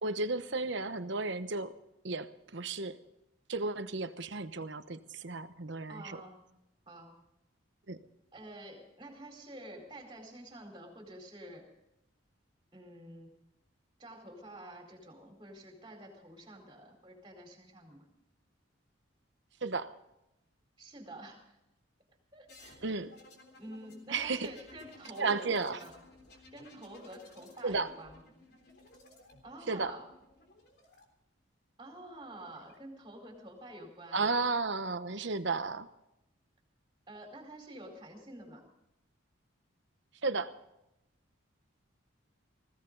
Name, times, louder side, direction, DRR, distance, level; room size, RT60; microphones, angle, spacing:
voice 1, 0.0-1.8 2.0-3.0 3.5-6.2 7.9-8.0 19.6-19.9 22.8-23.1 24.1-24.5 25.1-25.8 27.6-27.9 29.7-29.9 34.1-35.9 40.2-40.5, right 3 dB, 60° right, 11 dB, 1.0 m, -33 dB
voice 2, 5.9-6.4 6.9-7.2 8.3-11.6 12.7-13.4 14.0-18.1 20.8-21.6 22.3-22.9 23.6-25.9 26.5-28.2 29.4-30.1 31.8-34.3 37.1-38.6, right 1 dB, 20° right, 2 dB, 4.4 m, -48 dB
sound 1, 22.5-31.0 32.1-32.8, left 2 dB, 50° left, 3.6 m, -57 dB
20.0 x 16.0 x 4.0 m, 0.86 s
head